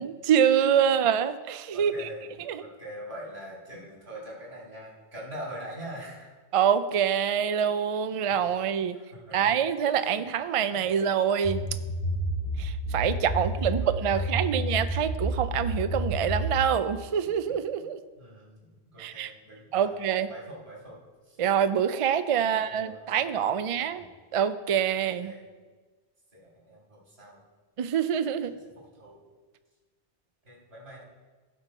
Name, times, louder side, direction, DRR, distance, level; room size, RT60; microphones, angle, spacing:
voice 1, 0.0-2.1 2.5-2.6 6.5-9.0 9.3-11.6 12.6-18.0 19.0-19.3 19.7-20.3 21.4-24.0 24.3-25.3 27.8-28.5, right 8 dB, 55° right, 11 dB, 0.4 m, -26 dB
voice 2, 1.7-2.3 2.6-6.3 8.9-9.5 10.0-10.1 10.7-11.0 13.4-14.7 17.2-17.9 18.2-19.9 20.3-21.0 21.3-21.5 22.4-23.2 23.6-23.7 24.0-24.1 24.9-25.5 26.3-27.4 28.5-29.2 30.4-31.0, right 1 dB, 85° right, -4 dB, 3.1 m, -44 dB
sound 1, 11.4-16.7, right 1 dB, 65° left, 3.5 m, -30 dB
15.0 x 5.3 x 4.2 m, 1.4 s
omnidirectional pair, 1.1 m